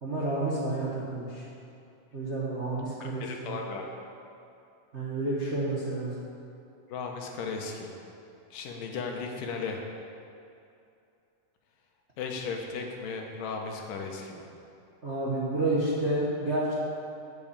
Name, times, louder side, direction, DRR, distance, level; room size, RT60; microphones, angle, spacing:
voice 1, 0.0-1.4 2.1-3.5 4.9-6.1 15.0-16.7, right 2 dB, 45° right, -6 dB, 0.8 m, -30 dB
voice 2, 3.0-3.9 6.9-7.9 8.5-9.8 12.2-14.5, left 4 dB, 80° left, 2 dB, 2.7 m, -36 dB
8.7 x 7.9 x 8.7 m, 2.6 s
omnidirectional pair, 3.8 m